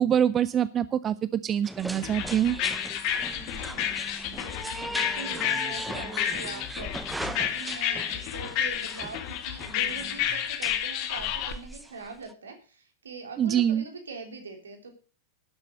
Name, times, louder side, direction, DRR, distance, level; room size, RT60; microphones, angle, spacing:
voice 1, 0.0-2.6 13.4-13.8, right 9 dB, 25° right, 16 dB, 0.5 m, -25 dB
sound 1, 1.6-12.3, right 1 dB, 5° right, 0.8 m, -39 dB
sound 2, 2.0-11.5, left 10 dB, 45° left, 1.6 m, -31 dB
voice 2, 3.3-4.0 4.3-14.9, right 4 dB, 70° right, 5 dB, 3.1 m, -43 dB
12.0 x 8.1 x 6.5 m, 0.38 s
figure-of-eight pair, 90°, 0 cm